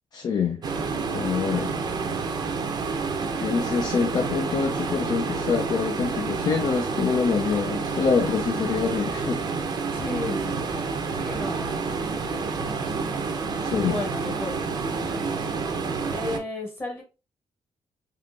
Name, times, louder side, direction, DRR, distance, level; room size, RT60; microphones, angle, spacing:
voice 1, 0.1-0.6 1.1-1.7 3.4-9.4 13.6-14.0, left 6 dB, 40° left, 0.4 m, -25 dB
sound 1, 0.6-16.4, right 4 dB, 40° right, 0.5 m, -29 dB
voice 2, 7.6-7.9 9.9-10.8 11.1-12.7 13.4-14.5 16.1-17.0, left 2 dB, 20° left, 1.0 m, -35 dB
3.7 x 2.8 x 2.4 m
cardioid pair, 150°, 11 cm